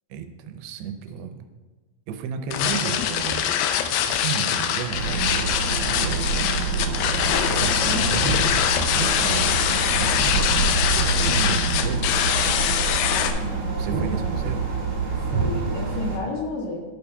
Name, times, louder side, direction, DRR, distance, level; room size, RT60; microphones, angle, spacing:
voice 1, 0.1-1.5 2.1-3.4 3.9-5.4 5.7-7.0 7.3-8.4 8.9-12.1 13.8-14.7, right 7 dB, 85° right, 7 dB, 2.7 m, -32 dB
sound 1, 2.5-13.3, left 9 dB, 85° left, 2.5 m, -23 dB
sound 2, 4.9-16.2, right 4 dB, 55° right, 2.8 m, -26 dB
voice 2, 13.4-14.3 15.1-16.8, left 2 dB, 60° left, -2 dB, 2.2 m, -32 dB
12.5 x 6.9 x 2.3 m, 1.3 s
omnidirectional pair, 4.6 m